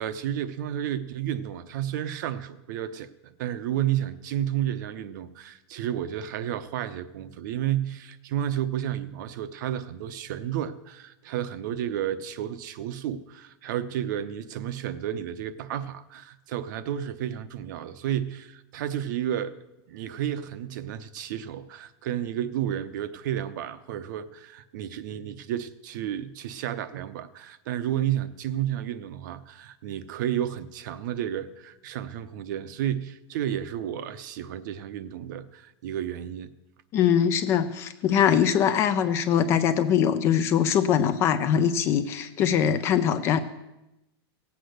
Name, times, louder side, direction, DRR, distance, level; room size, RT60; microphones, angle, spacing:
voice 1, 0.0-19.6 19.9-36.5, right 11 dB, 45° right, 13 dB, 0.7 m, -31 dB
voice 2, 36.9-43.4, left 8 dB, 20° left, 11 dB, 0.4 m, -22 dB
17.0 x 8.0 x 6.5 m, 0.94 s
supercardioid pair, 180°, 14 cm